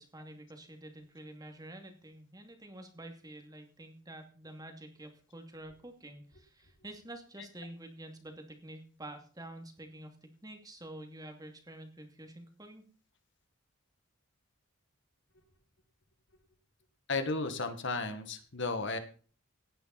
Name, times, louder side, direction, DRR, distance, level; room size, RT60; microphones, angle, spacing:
voice 1, 0.0-12.8, right 1 dB, 20° right, 5 dB, 2.5 m, -48 dB
voice 2, 17.1-19.0, left 3 dB, 60° left, 9 dB, 1.8 m, -34 dB
17.5 x 10.0 x 4.2 m, 0.41 s
head